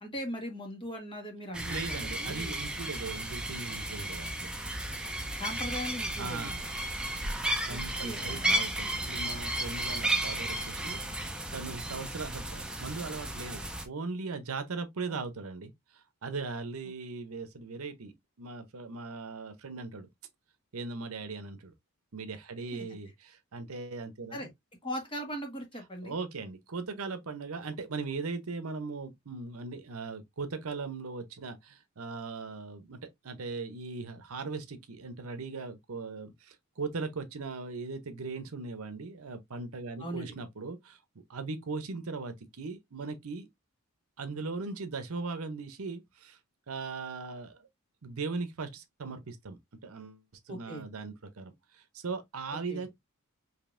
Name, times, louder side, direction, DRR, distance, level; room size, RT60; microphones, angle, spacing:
voice 1, 0.0-2.5 5.4-6.6 7.7-8.6 15.1-15.2 22.7-22.9 24.3-24.5 24.8-26.1 40.0-40.3 50.5-50.8 52.7-52.8, equal, 25° left, 1.4 m, -39 dB
sound 1, 1.5-13.9, right 1 dB, 5° right, 0.6 m, -34 dB
voice 2, 1.7-4.3 6.2-6.7 7.6-20.1 20.7-21.7 22.1-24.5 26.0-41.0 41.3-43.5 44.2-46.4 46.7-47.7 48.0-52.9, right 4 dB, 75° right, 0.8 m, -39 dB
5.1 x 2.8 x 2.5 m
head